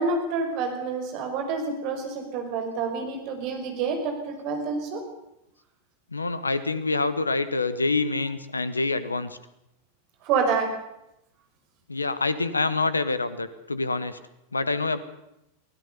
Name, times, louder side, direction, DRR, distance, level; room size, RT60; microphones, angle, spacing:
voice 1, 0.0-5.0 10.2-10.7, right 4 dB, 45° right, 5 dB, 5.4 m, -28 dB
voice 2, 6.1-9.4 11.9-14.2 14.5-15.0, left 3 dB, 80° left, 14 dB, 1.3 m, -26 dB
24.0 x 16.5 x 6.9 m, 0.85 s
figure-of-eight pair, 90°, 0 cm